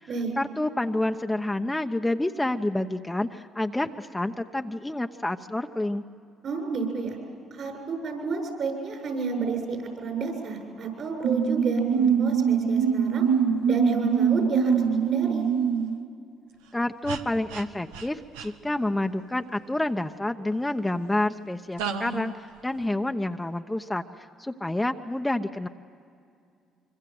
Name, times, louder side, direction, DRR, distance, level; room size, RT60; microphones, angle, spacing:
voice 1, 0.4-6.0 16.7-22.3 22.6-25.7, left 1 dB, 10° left, 5 dB, 1.0 m, -28 dB
voice 2, 6.4-7.2 7.5-13.3 13.7-15.4, right 4 dB, 60° right, 3 dB, 7.5 m, -31 dB
sound 1, 11.2-16.0 17.1-17.2 17.5-17.6 17.9-18.1 18.4-18.5 21.8-22.3, right 7 dB, 90° right, 1.2 m, -24 dB
26.0 x 24.5 x 7.9 m, 2.4 s
supercardioid pair, 60°, 0 cm